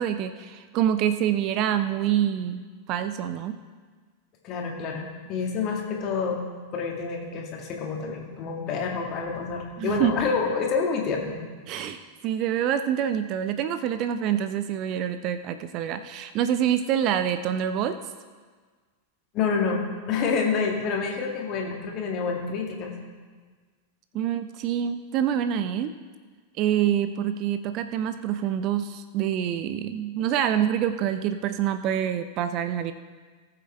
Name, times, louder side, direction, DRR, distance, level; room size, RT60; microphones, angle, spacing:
voice 1, 0.0-3.6 9.8-10.1 11.7-18.0 24.1-25.9 26.6-32.9, right 10 dB, 40° right, 11 dB, 0.5 m, -26 dB
voice 2, 4.4-6.4 6.7-11.4 11.7-11.9 19.3-22.9, left 5 dB, 35° left, 1 dB, 2.2 m, -28 dB
19.0 x 7.6 x 3.4 m, 1.5 s
figure-of-eight pair, 90°, 0 cm